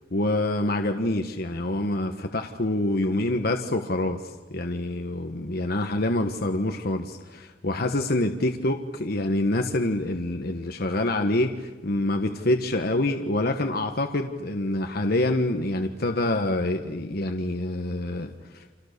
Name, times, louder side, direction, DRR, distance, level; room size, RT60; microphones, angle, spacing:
voice 1, 0.1-18.7, left 1 dB, 55° left, 5 dB, 1.3 m, -26 dB
30.0 x 26.5 x 6.7 m, 1.3 s
head